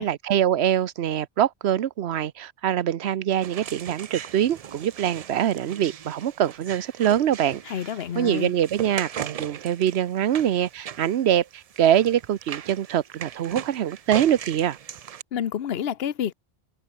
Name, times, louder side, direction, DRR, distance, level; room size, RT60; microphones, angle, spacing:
voice 1, 0.0-7.6 8.2-14.8, right 10 dB, 90° right, 1.0 m, -24 dB
sound 1, 3.4-15.2, right 8 dB, 50° right, 0.5 m, -39 dB
voice 2, 7.6-8.5 15.3-16.3, left 9 dB, 75° left, 1.1 m, -29 dB
omnidirectional pair, 1.0 m